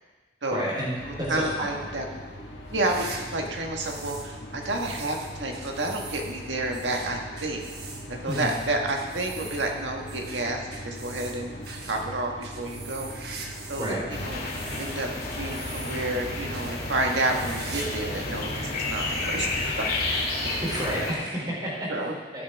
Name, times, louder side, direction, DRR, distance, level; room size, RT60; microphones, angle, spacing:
voice 1, 0.5-1.7 8.3-8.5 13.8-14.0 20.6-21.9 22.3-22.4, right 1 dB, 25° right, -6 dB, 4.1 m, -30 dB
sound 1, 1.0-19.8, equal, 80° left, 1.7 m, -41 dB
voice 2, 1.3-2.1 2.7-7.6 8.1-11.5 11.9-13.1 13.7-14.4 14.8-15.1 15.4-19.9 20.2-20.3 21.9-22.1, right 2 dB, 85° right, 1 dB, 1.6 m, -30 dB
sound 2, 2.6-4.3 4.6-14.0 14.3-16.2 16.5-16.8 17.1-18.0 18.3-18.4 19.2-19.3 20.5-20.6, right 4 dB, 60° right, 1.2 m, -43 dB
sound 3, 14.1-21.1, left 2 dB, 55° left, 2.1 m, -31 dB
15.5 x 9.3 x 3.6 m, 1.4 s
head